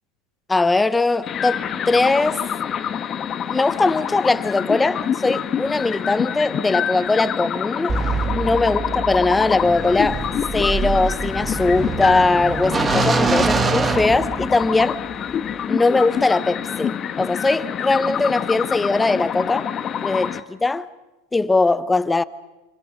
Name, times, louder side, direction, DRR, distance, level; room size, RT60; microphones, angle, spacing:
voice 1, 0.5-2.4 3.5-8.0 8.3-10.2 10.5-15.0 15.7-19.7 20.0-20.9 21.3-22.2, left 3 dB, 10° left, 0.9 m, -20 dB
sound 1, 1.2-20.4, left 8 dB, 35° left, 1.2 m, -27 dB
sound 2, 7.9-14.8, right 4 dB, 20° right, 1.6 m, -24 dB
28.5 x 27.0 x 5.4 m
hypercardioid pair, 105°, 0 cm